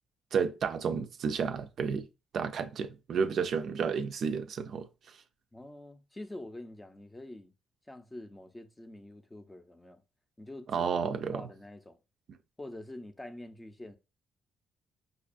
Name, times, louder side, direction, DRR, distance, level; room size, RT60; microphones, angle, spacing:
voice 1, 0.3-2.1 2.3-4.9 10.7-11.4, right 6 dB, 60° right, 0.4 m, -31 dB
voice 2, 5.5-7.5 7.9-10.0 10.4-10.9 11.3-12.0 12.6-14.0, left 1 dB, 15° left, 0.5 m, -46 dB
5.1 x 2.3 x 2.5 m
cardioid pair, 90°, 0 cm